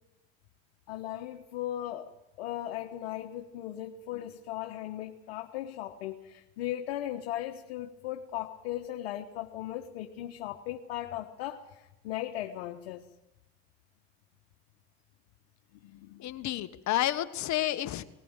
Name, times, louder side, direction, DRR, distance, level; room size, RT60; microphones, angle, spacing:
voice 1, 0.9-2.1 2.4-13.1 15.8-16.2, left 13 dB, 90° left, 3 dB, 1.4 m, -37 dB
voice 2, 16.2-18.0, left 14 dB, 60° left, 10 dB, 1.6 m, -30 dB
20.0 x 19.5 x 7.5 m, 0.97 s
supercardioid pair, 80°, 31 cm